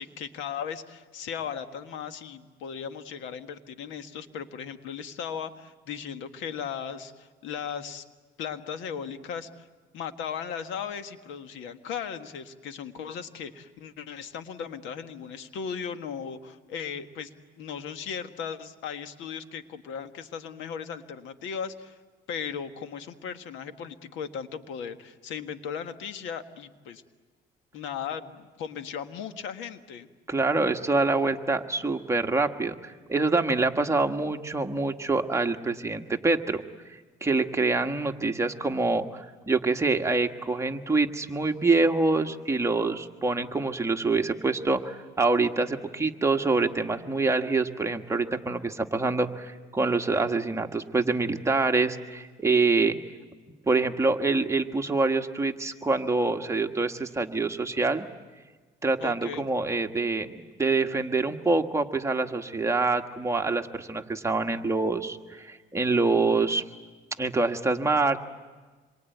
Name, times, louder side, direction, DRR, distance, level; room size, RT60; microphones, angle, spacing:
voice 1, 0.0-8.0 8.4-9.7 9.9-17.3 17.6-22.0 22.3-27.0 27.7-30.1 59.0-59.4, left 7 dB, 85° left, 9 dB, 1.6 m, -37 dB
voice 2, 30.3-36.6 37.2-53.0 53.7-58.1 58.8-66.6 67.2-68.2, right 3 dB, 15° right, 4 dB, 1.5 m, -26 dB
27.0 x 23.5 x 9.3 m, 1.4 s
cardioid pair, 110°, 19 cm